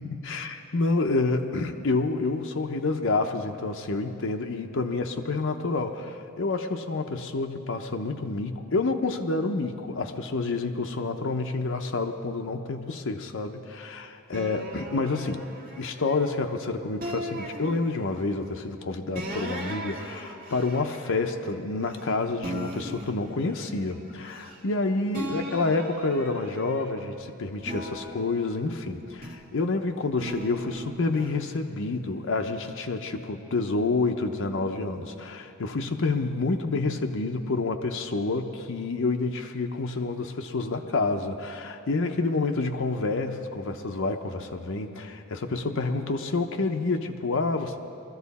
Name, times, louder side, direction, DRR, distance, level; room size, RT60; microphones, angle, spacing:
voice 1, 0.0-15.4 15.8-47.8, left 3 dB, 60° left, 5 dB, 0.7 m, -28 dB
sound 1, 14.3-16.5 17.0-18.4 19.1-22.1 22.4-24.8 25.1-27.1 27.6-29.6 30.2-31.3, right 1 dB, 40° right, 1.5 m, -39 dB
21.0 x 14.0 x 4.2 m, 2.7 s
head